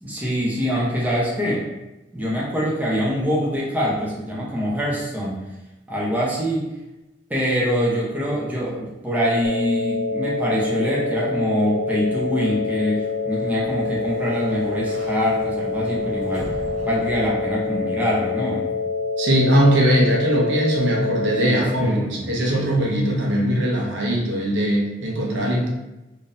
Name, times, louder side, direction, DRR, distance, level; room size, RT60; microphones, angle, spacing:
voice 1, 0.0-1.7 2.1-5.4 5.9-6.7 7.3-16.5 16.8-18.7 21.4-22.6, equal, 10° right, -5 dB, 0.7 m, -24 dB
sound 1, 9.4-21.4, left 3 dB, 60° left, 0.5 m, -26 dB
Sliding door, 13.1-18.0, equal, 40° right, 0.9 m, -40 dB
voice 2, 19.2-25.7, equal, 85° right, -2 dB, 0.7 m, -20 dB
3.6 x 2.7 x 2.5 m, 1.0 s
head